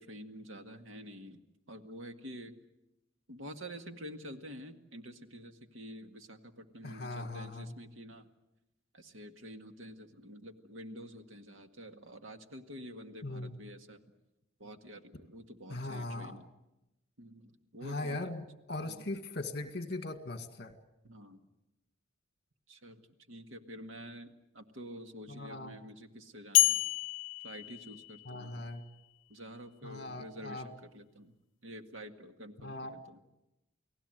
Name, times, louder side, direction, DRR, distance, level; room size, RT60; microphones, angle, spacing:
voice 1, 0.0-1.4 1.7-2.5 3.3-8.3 8.9-14.0 14.6-16.5 17.2-18.2 18.8-19.0 21.0-21.4 22.7-26.8 27.4-28.6 29.3-31.4 31.6-33.2, equal, 90° right, 6 dB, 2.0 m, -48 dB
voice 2, 6.8-7.7 13.2-13.6 15.7-16.4 17.8-20.7 25.3-25.8 28.3-28.9 29.8-30.7 32.6-33.0, left 2 dB, 55° left, 8 dB, 2.0 m, -40 dB
sound 1, 26.5-28.6, left 16 dB, 75° left, 0.8 m, -29 dB
29.5 x 19.0 x 8.0 m, 0.92 s
head